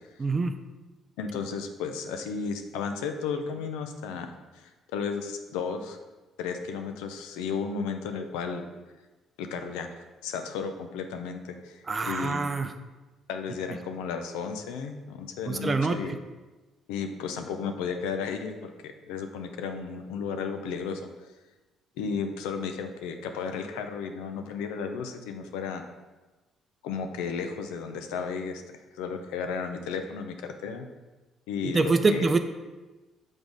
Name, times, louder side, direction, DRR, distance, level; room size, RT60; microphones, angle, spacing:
voice 1, 0.2-0.5 11.9-12.7 15.5-16.0 31.6-32.4, right 3 dB, 35° right, 8 dB, 0.5 m, -25 dB
voice 2, 1.2-6.0 6.4-8.7 9.4-9.9 10.2-12.4 13.3-16.1 16.9-21.0 22.0-25.8 26.8-28.6 29.0-30.9 31.5-32.3, left 5 dB, 90° left, 6 dB, 0.5 m, -34 dB
6.1 x 3.6 x 5.1 m, 1.2 s
supercardioid pair, 70°, 0 cm